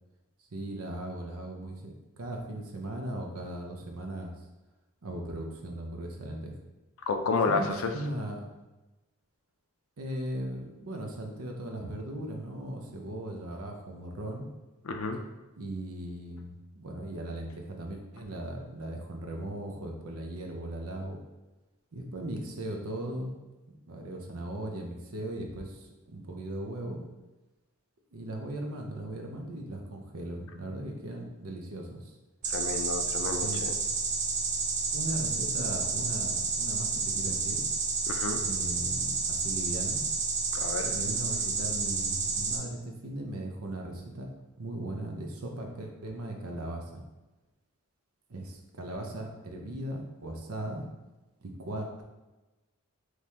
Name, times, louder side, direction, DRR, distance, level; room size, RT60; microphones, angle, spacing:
voice 1, 0.5-4.3 5.0-6.5 7.5-8.5 10.0-14.5 15.6-21.2 21.9-23.3 23.9-27.0 28.1-32.1 33.4-33.6 34.9-37.6 38.4-40.0 40.9-44.3 44.6-47.0 48.3-50.8 51.4-52.0, right 1 dB, 75° right, 2 dB, 0.8 m, -38 dB
voice 2, 7.1-7.9 14.8-15.2 32.5-33.7 38.1-38.4 40.5-40.9, left 4 dB, 65° left, 6 dB, 0.5 m, -30 dB
sound 1, 32.4-42.6, right 4 dB, 35° right, 0.5 m, -30 dB
5.2 x 3.2 x 2.8 m, 1.1 s
head